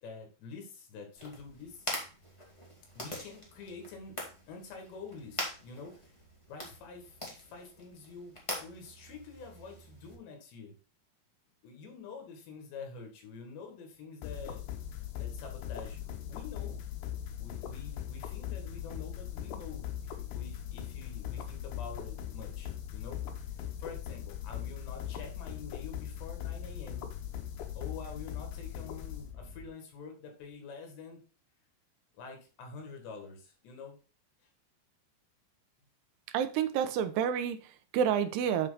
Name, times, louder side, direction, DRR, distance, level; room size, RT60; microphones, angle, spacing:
voice 1, 0.0-2.0 3.0-4.2 4.5-6.2 6.5-10.7 11.6-14.6 15.2-16.8 17.4-27.1 27.8-31.2 32.2-34.0, left 4 dB, 90° left, 4.2 m, -47 dB
sound 1, 1.1-10.1, left 1 dB, 30° left, 0.6 m, -43 dB
sound 2, 14.2-29.7, left 10 dB, 75° left, 2.8 m, -40 dB
voice 2, 36.3-38.7, right 8 dB, 80° right, 2.8 m, -29 dB
9.2 x 4.5 x 4.0 m
omnidirectional pair, 4.8 m